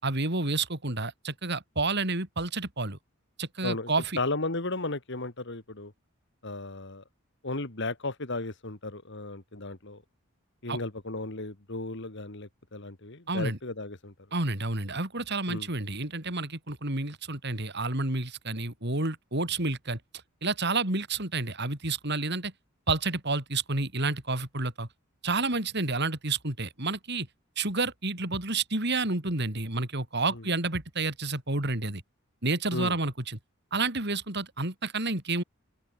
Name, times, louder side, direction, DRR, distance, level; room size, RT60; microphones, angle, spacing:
voice 1, 0.0-3.0 3.4-4.2 10.7-10.8 13.3-13.6 14.3-20.0 20.4-22.5 22.9-24.9 25.2-27.3 27.6-32.0 32.4-33.4 33.7-35.4, right 3 dB, 55° right, 4.7 m, -30 dB
voice 2, 4.2-5.9 6.4-7.0 7.4-10.0 10.6-14.1 15.5-15.7 30.3-30.4 32.7-32.9, left 2 dB, 60° left, 2.4 m, -35 dB
open air
head